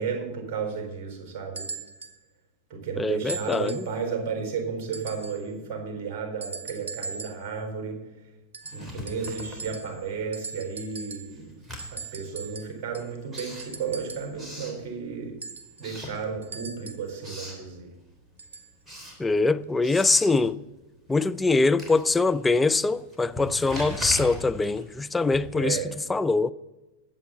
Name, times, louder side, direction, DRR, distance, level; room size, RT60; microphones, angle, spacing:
voice 1, 0.0-1.7 2.7-8.0 8.7-11.5 11.9-15.4 15.8-17.9 25.5-25.9, right 5 dB, 35° right, 4.2 m, -33 dB
sound 1, 1.5-2.2 3.3-4.0 4.9-5.5 6.4-7.5 8.5-10.1 10.3-11.4 11.8-14.4 15.4-17.1 18.4-18.7 19.6-19.7, right 4 dB, 65° right, 0.9 m, -40 dB
voice 2, 3.0-3.9 19.2-20.6 21.1-25.8 26.1-26.5, left 3 dB, 10° left, 0.4 m, -23 dB
Writing, 8.7-10.3 10.6-15.4 15.7-16.7 17.0-17.7 18.1-25.8, equal, 15° right, 3.4 m, -41 dB
21.0 x 7.8 x 4.0 m
figure-of-eight pair, 90°, 0 cm